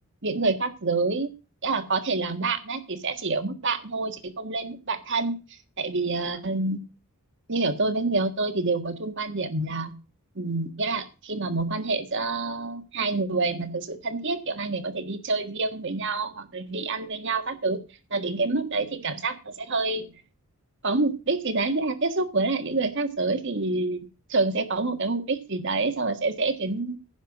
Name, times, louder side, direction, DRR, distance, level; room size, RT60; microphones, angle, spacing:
voice 1, 0.2-1.3 1.6-5.4 5.8-6.8 7.5-9.9 10.3-17.8 18.1-20.1 20.8-27.0, right 3 dB, 55° right, 8 dB, 1.6 m, -27 dB
10.5 x 5.7 x 7.8 m, 0.32 s
head